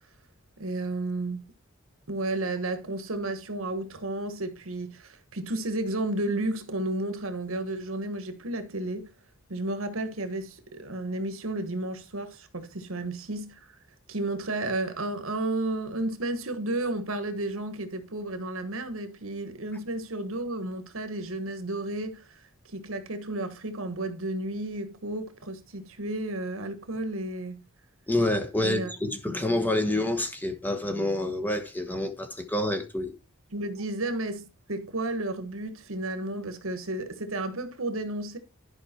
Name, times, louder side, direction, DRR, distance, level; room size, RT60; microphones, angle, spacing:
voice 1, 0.6-1.4 2.1-9.1 9.5-13.7 14.1-22.4 22.7-27.6 28.6-28.9 29.9-30.0 33.5-38.4, right 2 dB, 75° right, 1.4 m, -32 dB
voice 2, 28.1-33.1, left 1 dB, 10° left, 1.2 m, -28 dB
11.5 x 5.2 x 4.4 m
head